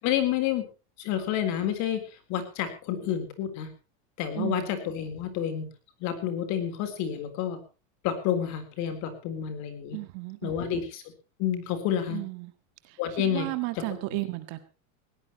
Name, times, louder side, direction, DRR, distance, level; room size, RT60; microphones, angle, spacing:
voice 1, 0.0-0.7 1.0-2.0 2.3-3.7 4.2-5.7 6.0-7.6 8.0-10.0 10.4-11.0 11.4-12.2 13.0-13.5 13.8-13.9 14.1-14.2, left 10 dB, 40° left, 9 dB, 3.8 m, -29 dB
voice 2, 4.3-4.7 9.9-10.8 12.1-12.5 13.2-14.6, right 21 dB, 45° right, 10 dB, 1.7 m, -33 dB
20.0 x 17.5 x 3.0 m, 0.33 s
supercardioid pair, 165°, 41 cm